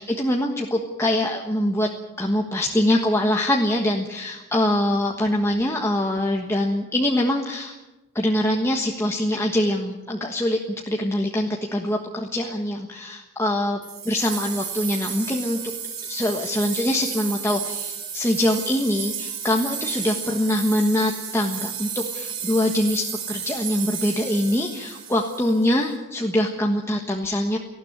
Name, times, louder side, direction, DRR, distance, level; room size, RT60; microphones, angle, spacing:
voice 1, 0.0-1.9 2.2-7.7 8.1-10.6 10.9-13.8 14.0-27.6, left 1 dB, 10° left, 0 dB, 1.4 m, -23 dB
sound 1, 13.8-25.8, right 7 dB, 25° right, 6.7 m, -33 dB
18.5 x 15.0 x 9.7 m, 1.1 s
head